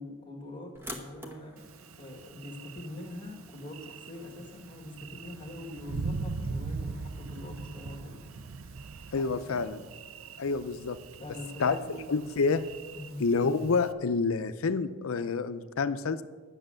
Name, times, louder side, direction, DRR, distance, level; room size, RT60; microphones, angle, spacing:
voice 1, 0.0-1.6 2.0-8.3 9.2-9.6 11.2-12.0 12.9-13.3, left 1 dB, 20° left, 1 dB, 1.8 m, -44 dB
sound 1, 0.8-9.5, equal, 10° right, 1.1 m, -51 dB
Thunder, 1.6-13.9, right 4 dB, 75° right, 0.5 m, -41 dB
voice 2, 9.1-9.8 10.4-11.0 11.6-11.8 12.1-12.6 13.2-16.2, left 4 dB, 75° left, 12 dB, 0.6 m, -28 dB
10.5 x 6.4 x 7.7 m, 1.4 s
head